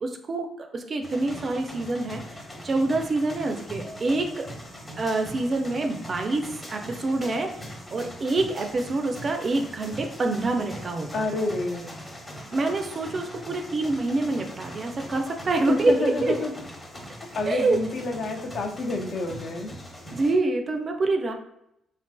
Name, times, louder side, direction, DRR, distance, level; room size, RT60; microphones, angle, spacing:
voice 1, 0.0-4.5 5.0-11.3 12.5-16.3 17.1-17.2 17.5-17.8 20.1-21.3, right 2 dB, 40° right, 4 dB, 0.4 m, -26 dB
sound 1, 1.0-20.4, equal, 20° left, 0.7 m, -41 dB
voice 2, 11.1-11.9 15.7-16.5 17.3-19.7, left 2 dB, 60° left, 2 dB, 0.5 m, -28 dB
3.2 x 2.4 x 2.2 m, 0.79 s
cardioid pair, 90°, 0 cm